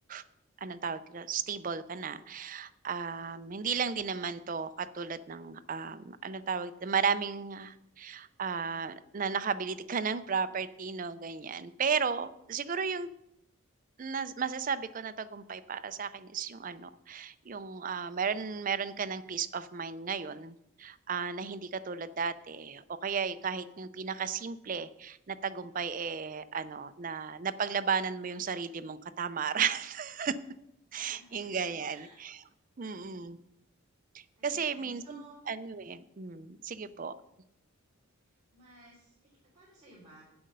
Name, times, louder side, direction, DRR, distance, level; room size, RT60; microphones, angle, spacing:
voice 1, 0.6-13.1 14.0-30.3 30.9-32.4 32.8-33.4 34.1-37.1, right 6 dB, 40° right, 12 dB, 0.4 m, -34 dB
voice 2, 30.9-32.2 32.8-33.2 34.4-35.4 36.3-36.6 38.5-40.2, right 2 dB, 20° right, -10 dB, 3.5 m, -57 dB
9.3 x 7.9 x 5.3 m, 0.82 s
head